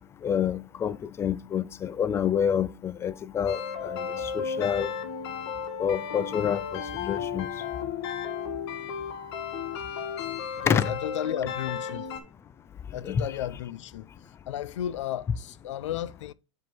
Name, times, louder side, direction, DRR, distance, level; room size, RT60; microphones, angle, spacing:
voice 1, 0.2-4.9 5.8-7.5 10.7-10.8 13.0-13.2, left 8 dB, 15° left, 0.4 m, -28 dB
sound 1, 3.5-12.2, left 7 dB, 65° left, 1.2 m, -34 dB
voice 2, 10.6-12.1 12.9-16.3, left 12 dB, 80° left, 0.5 m, -34 dB
5.1 x 3.7 x 5.8 m
supercardioid pair, 130°, 15 cm